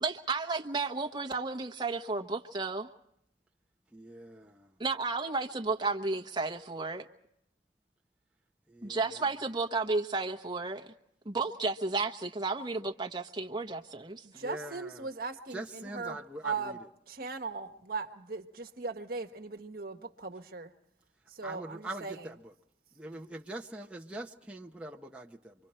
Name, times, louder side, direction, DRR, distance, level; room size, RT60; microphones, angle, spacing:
voice 1, 0.0-2.9 4.8-7.1 8.8-10.9 11.2-14.2, right 3 dB, 25° right, 1.1 m, -32 dB
voice 2, 3.9-4.7 8.7-9.0 14.3-15.0 15.5-16.8 21.4-22.3 23.0-25.5, right 1 dB, 5° right, 0.8 m, -43 dB
voice 3, 14.2-16.8 17.1-20.7 21.3-22.3, right 4 dB, 55° right, 1.4 m, -39 dB
27.0 x 24.5 x 4.4 m
head